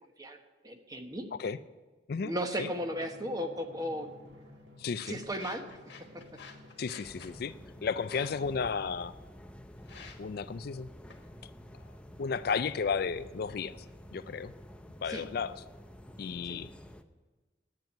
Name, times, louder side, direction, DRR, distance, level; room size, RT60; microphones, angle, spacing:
voice 1, 0.6-1.3 2.2-4.1 5.1-5.7 6.1-6.2 15.1-15.2 16.5-16.6, equal, 20° right, 5 dB, 1.2 m, -35 dB
Drum, 2.7-7.8, left 1 dB, 75° right, 1.9 m, -54 dB
sound 1, 4.0-13.9, left 5 dB, 80° left, 1.6 m, -55 dB
voice 2, 4.8-5.2 6.8-7.5 7.8-9.1 10.2-10.9 12.2-13.8 14.1-14.5 15.0-15.5 16.2-16.7, left 5 dB, 60° left, 14 dB, 0.4 m, -33 dB
sound 2, 7.0-17.0, equal, 5° left, 0.6 m, -50 dB
10.5 x 8.9 x 9.3 m, 1.3 s
head